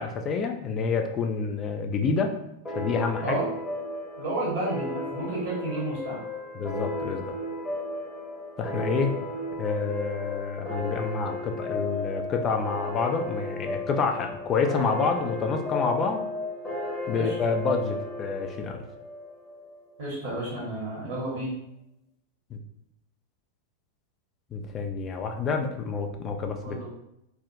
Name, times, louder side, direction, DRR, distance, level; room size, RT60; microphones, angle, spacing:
voice 1, 0.0-2.3 2.7-3.4 6.5-7.3 8.6-9.2 9.6-16.2 17.1-18.8 22.5-22.6 24.5-26.8, left 5 dB, 30° left, 5 dB, 0.4 m, -28 dB
sound 1, 2.6-19.7, left 1 dB, 15° left, 0.9 m, -34 dB
voice 2, 3.2-3.6 4.2-6.2 17.1-17.3 20.0-21.6 26.6-26.9, right 1 dB, 55° right, -7 dB, 1.2 m, -31 dB
3.4 x 2.1 x 2.7 m, 0.82 s
figure-of-eight pair, 90°, 0 cm